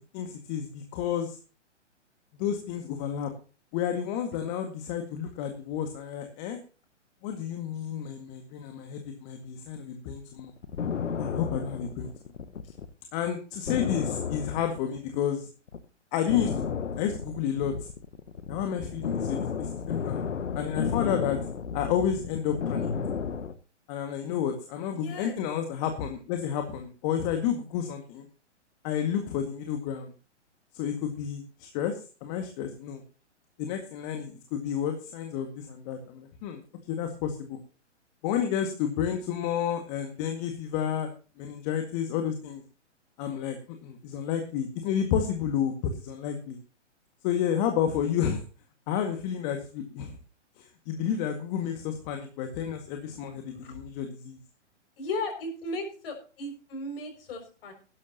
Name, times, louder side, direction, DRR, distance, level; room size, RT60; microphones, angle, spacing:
voice 1, 0.1-1.4 2.4-3.3 3.7-6.6 7.2-10.5 11.2-12.1 13.1-15.5 16.1-16.6 17.0-17.9 18.5-20.2 20.6-21.4 21.7-22.9 23.9-28.2 28.8-30.1 30.7-33.0 33.6-36.6 36.9-37.6 38.2-41.1 41.4-42.6 43.2-43.6 43.8-46.6 47.2-48.4 48.9-50.2 50.6-54.4, left 8 dB, 35° left, 5 dB, 2.0 m, -31 dB
sound 1, 10.4-12.9 13.2-13.3 13.7-15.3 15.7-15.8 16.3-23.5, left 6 dB, 75° left, 1.4 m, -32 dB
voice 2, 24.9-25.3 53.5-53.8 55.0-57.7, left 2 dB, 50° left, 6 dB, 6.2 m, -36 dB
17.0 x 12.5 x 2.9 m, 0.35 s
figure-of-eight pair, 125°, 37 cm